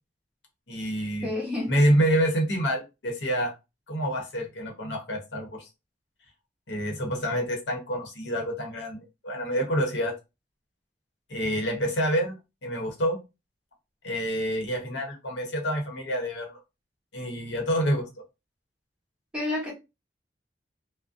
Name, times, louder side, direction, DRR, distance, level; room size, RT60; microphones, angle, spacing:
voice 1, 0.7-1.3 1.7-3.5 3.9-5.7 6.7-10.1 11.3-12.3 12.6-13.2 14.0-16.6 17.1-18.1, equal, 90° left, 0.8 m, -27 dB
voice 2, 1.2-1.8 19.3-19.7, left 2 dB, 5° right, 0.9 m, -29 dB
2.4 x 2.0 x 2.5 m
head